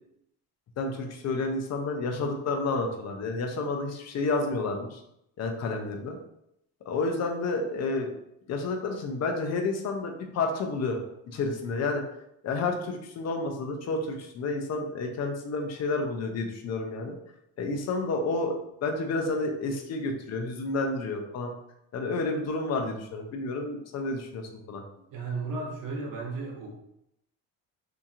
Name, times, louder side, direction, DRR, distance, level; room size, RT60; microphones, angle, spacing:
voice 1, 0.8-5.0 5.4-6.2 6.9-8.1 8.5-11.0 11.3-12.0 12.4-17.2 17.6-21.5 21.9-24.8, left 3 dB, 50° left, 3 dB, 0.6 m, -30 dB
voice 2, 25.1-26.7, right 3 dB, 70° right, -1 dB, 0.9 m, -34 dB
2.8 x 2.7 x 2.4 m, 0.79 s
cardioid pair, 110°, 34 cm